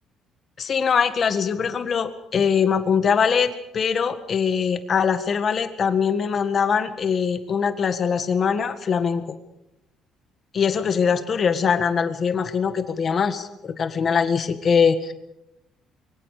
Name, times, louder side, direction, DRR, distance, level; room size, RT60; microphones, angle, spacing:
voice 1, 0.6-9.2 10.5-15.1, left 6 dB, 30° left, 10 dB, 1.7 m, -22 dB
25.5 x 23.5 x 5.0 m, 0.87 s
cardioid pair, 170°, 0 cm